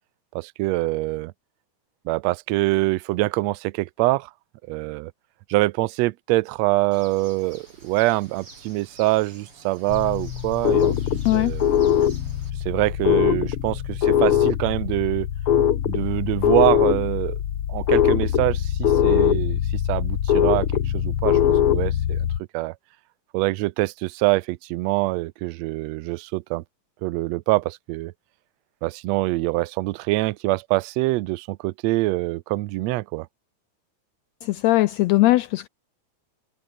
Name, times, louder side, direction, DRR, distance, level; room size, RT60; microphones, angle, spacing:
voice 1, 0.3-1.3 2.1-4.3 4.7-5.1 5.5-11.0 11.3-11.8 12.6-15.3 15.9-17.4 17.7-19.6 19.9-20.7 20.9-21.4 21.7-22.2 22.5-22.7 23.3-26.6 27.0-28.1 28.8-33.3, right 20 dB, 75° right, 1.6 m, -24 dB
Bird, 6.9-12.5, right 3 dB, 45° right, 8.1 m, -49 dB
sound 1, 9.9-22.4, left 10 dB, 55° left, 1.9 m, -22 dB
voice 2, 34.4-35.7, left 18 dB, 80° left, 1.6 m, -19 dB
omnidirectional pair, 3.5 m